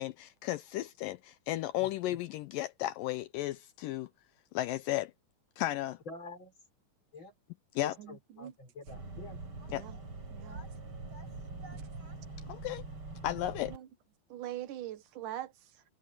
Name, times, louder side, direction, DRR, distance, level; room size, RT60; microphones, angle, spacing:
voice 1, 0.0-4.1 4.5-5.1 5.6-6.0 7.8-8.0 9.7-9.9 12.5-12.8 13.2-13.7, left 15 dB, 80° left, 2.1 m, -34 dB
voice 2, 6.1-6.5 7.1-7.3 7.8-9.4, left 3 dB, 30° left, 5.0 m, -47 dB
voice 3, 8.0-8.5 9.7-10.0 10.3-10.6 11.7-12.1 13.7-13.9 14.3-15.8, right 12 dB, 65° right, 2.7 m, -43 dB
sound 1, 8.9-13.8, right 3 dB, 35° right, 5.7 m, -44 dB
omnidirectional pair, 4.3 m